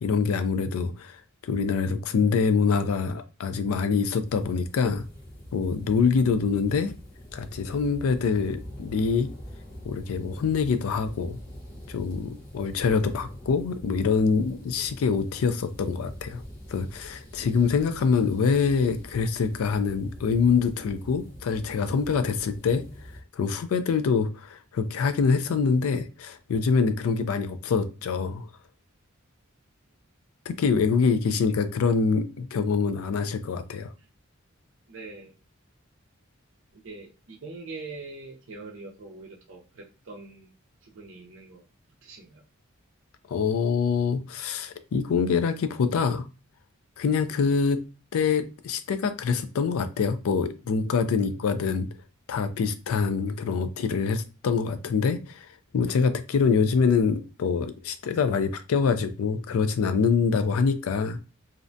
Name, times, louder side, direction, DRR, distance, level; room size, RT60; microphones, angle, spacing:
voice 1, 0.0-1.2 1.4-5.0 5.5-6.9 7.3-9.3 9.8-11.4 11.9-16.4 16.7-22.8 23.4-28.5 30.5-33.9 43.3-46.3 47.0-47.8 48.1-51.9 52.3-55.5 55.7-61.2, left 5 dB, 85° left, 10 dB, 0.4 m, -25 dB
sound 1, 4.2-23.2, equal, 45° left, 0.9 m, -44 dB
voice 2, 34.9-35.3 36.7-40.5 40.8-41.6 42.0-42.4 51.1-51.5, right 3 dB, 65° right, 2 dB, 0.5 m, -43 dB
2.5 x 2.1 x 2.5 m, 0.32 s
head